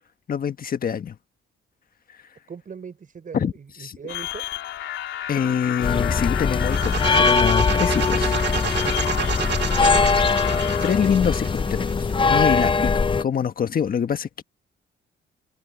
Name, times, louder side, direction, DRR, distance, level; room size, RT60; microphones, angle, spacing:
voice 1, 0.3-1.1 3.3-3.5 3.8-3.9 5.3-8.4 10.8-12.9 13.2-14.4, left 7 dB, 45° left, 1.6 m, -25 dB
voice 2, 2.5-4.6 9.8-10.7, right 6 dB, 45° right, 5.1 m, -41 dB
sound 1, 4.1-10.9, left 12 dB, 80° left, 3.3 m, -31 dB
sound 2, 5.8-13.2, left 4 dB, 25° left, 0.7 m, -21 dB
sound 3, 6.6-12.4, right 7 dB, 60° right, 2.1 m, -30 dB
cardioid pair, 90°, 20 cm